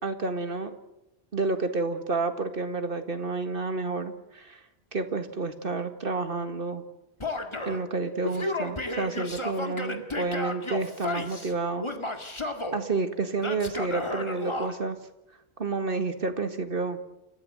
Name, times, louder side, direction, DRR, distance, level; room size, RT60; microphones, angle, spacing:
voice 1, 0.0-0.7 1.3-4.6 4.9-6.8 7.7-11.9 12.7-15.0 15.6-17.0, right 3 dB, 55° right, 8 dB, 1.9 m, -30 dB
Male speech man speaking / Yell, 7.2-7.8 8.2-11.5 11.8-12.8 13.4-14.7, left 2 dB, 25° left, 2.0 m, -33 dB
29.0 x 14.5 x 7.8 m, 0.92 s
omnidirectional pair, 1.1 m